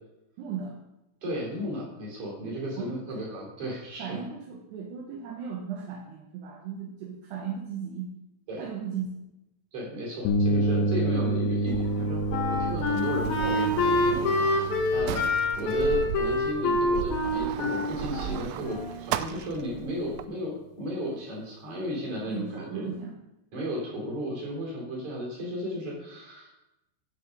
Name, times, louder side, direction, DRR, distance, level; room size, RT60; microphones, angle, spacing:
voice 1, 0.4-0.8 2.8-3.0 4.0-8.1 8.6-9.1 19.2-19.5 22.3-23.2, right 7 dB, 75° right, 0 dB, 3.1 m, -36 dB
voice 2, 1.2-4.2 8.5-8.6 9.7-15.3 15.5-22.9 23.5-26.6, equal, 40° right, -3 dB, 4.8 m, -34 dB
sound 1, 10.3-18.0, right 1 dB, 75° left, 2.7 m, -30 dB
Sliding door, 11.7-20.2, right 11 dB, 90° right, 2.3 m, -36 dB
Wind instrument woodwind instrument, 11.9-19.1, left 2 dB, 60° left, 2.2 m, -27 dB
11.0 x 7.1 x 5.3 m, 0.91 s
omnidirectional pair, 5.1 m